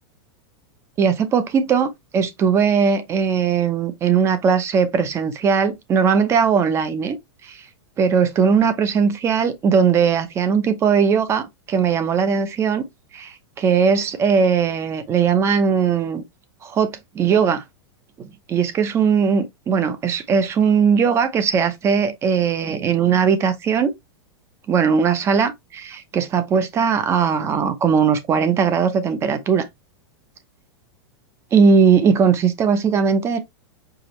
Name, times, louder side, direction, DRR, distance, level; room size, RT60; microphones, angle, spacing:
voice 1, 1.0-7.2 7.4-7.6 8.0-12.9 13.1-16.2 16.6-17.6 18.2-23.9 24.7-29.7 31.5-33.4, right 6 dB, 20° right, 0.7 m, -19 dB
4.9 x 2.9 x 3.0 m
supercardioid pair, 150°, 13 cm